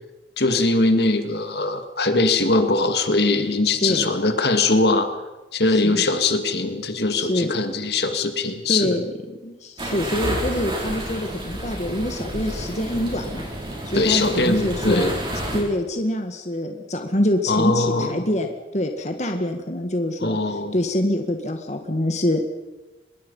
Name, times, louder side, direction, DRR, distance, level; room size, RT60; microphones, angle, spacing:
voice 1, 0.4-5.1 5.5-9.0 13.9-15.1 17.5-18.1 20.2-20.7, left 2 dB, 65° left, 7 dB, 2.1 m, -21 dB
voice 2, 3.8-4.1 5.7-6.0 7.1-7.5 8.7-9.1 9.4-13.5 13.9-15.1 15.5-22.5, left 1 dB, 40° left, 5 dB, 1.8 m, -25 dB
sound 1, 9.8-15.6, right 1 dB, 25° right, 6.3 m, -30 dB
24.5 x 21.5 x 5.6 m, 1.1 s
head